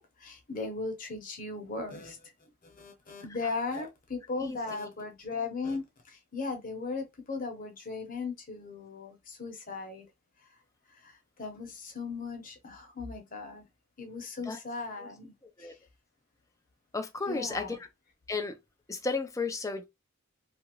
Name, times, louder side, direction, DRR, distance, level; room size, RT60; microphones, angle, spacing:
voice 1, 0.0-2.3 2.6-10.1 10.9-13.6 14.0-15.3 15.6-15.8 17.3-17.8, left 4 dB, 40° left, 0.9 m, -37 dB
voice 2, 16.9-17.9 18.3-18.6 18.9-19.8, left 3 dB, 15° left, 0.5 m, -33 dB
2.8 x 2.5 x 2.9 m
head